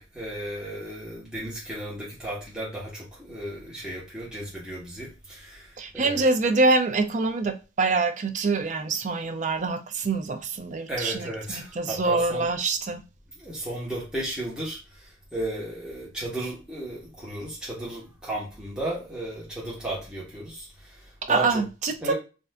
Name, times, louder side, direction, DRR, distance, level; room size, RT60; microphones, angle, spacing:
voice 1, 0.0-6.3 10.9-12.5 13.4-21.5 22.0-22.1, right 1 dB, 5° right, 1.0 m, -34 dB
voice 2, 5.8-13.0 21.2-22.1, right 3 dB, 45° right, 0.4 m, -25 dB
2.5 x 2.4 x 3.2 m
head